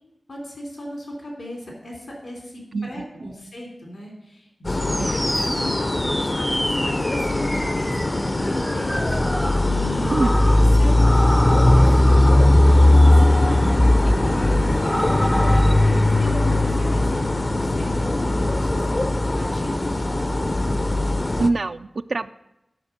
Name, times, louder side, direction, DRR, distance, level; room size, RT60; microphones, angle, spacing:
voice 1, 0.3-20.0, equal, 80° left, -1 dB, 3.3 m, -36 dB
voice 2, 2.7-3.3 5.0-5.2 10.1-10.3 21.4-22.3, right 3 dB, 75° right, 9 dB, 0.3 m, -25 dB
sound 1, 4.6-21.5, left 1 dB, 45° left, 0.6 m, -19 dB
sound 2, 4.8-16.0, equal, ahead, 0.4 m, -29 dB
12.5 x 6.0 x 5.1 m, 0.90 s
cardioid pair, 45°, 0 cm